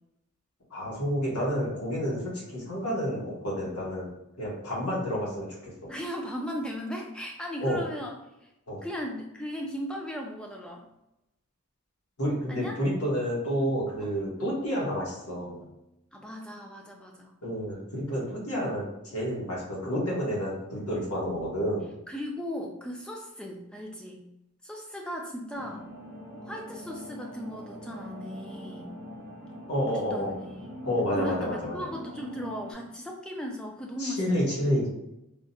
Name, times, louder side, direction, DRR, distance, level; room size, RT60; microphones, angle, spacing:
voice 1, 0.7-4.1 4.4-5.7 7.6-7.8 8.7-8.8 12.2-15.6 17.4-21.9 29.7-30.3 30.8-31.8 34.0-34.9, equal, 90° left, -5 dB, 1.2 m, -29 dB
voice 2, 5.9-8.2 8.8-10.8 12.5-12.8 14.0-14.2 16.1-17.3 22.1-24.3 24.6-25.8 26.4-28.9 29.9-30.7 31.1-34.6, equal, 5° left, 0 dB, 0.3 m, -37 dB
sound 1, 25.5-32.7, equal, 55° right, 0.7 m, -43 dB
3.5 x 2.1 x 2.6 m, 0.87 s
head